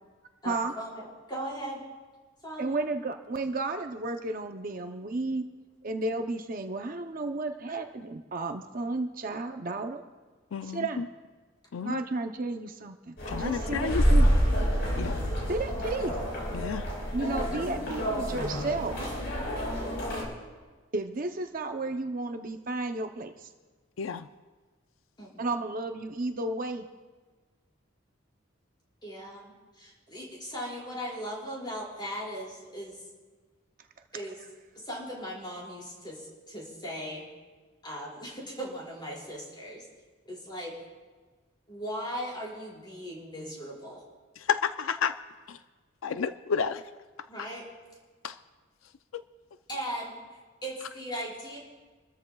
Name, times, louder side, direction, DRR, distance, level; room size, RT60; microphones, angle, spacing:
voice 1, 0.4-1.8 2.4-2.9 17.2-17.9 25.2-25.6 29.0-33.1 34.1-34.4 34.8-37.3 37.8-39.8 40.3-40.7 41.7-44.0 47.3-47.6 49.7-51.6, equal, 20° left, -5 dB, 5.2 m, -38 dB
voice 2, 2.6-5.4 5.8-10.0 10.6-11.0 11.8-14.3 15.5-16.2 17.1-19.0 20.9-23.5 25.4-26.8, right 2 dB, 45° right, 5 dB, 0.7 m, -33 dB
voice 3, 10.5-11.1 11.7-12.0 13.3-14.0 15.0-15.2 16.5-16.9 24.0-24.3 44.4-45.2 45.5-45.6 46.0-46.9 48.2-48.4 49.1-49.2, left 6 dB, 85° left, 11 dB, 0.4 m, -31 dB
sound 1, 13.2-20.2, equal, 60° left, 4.7 m, -28 dB
27.0 x 13.5 x 2.3 m, 1.4 s
head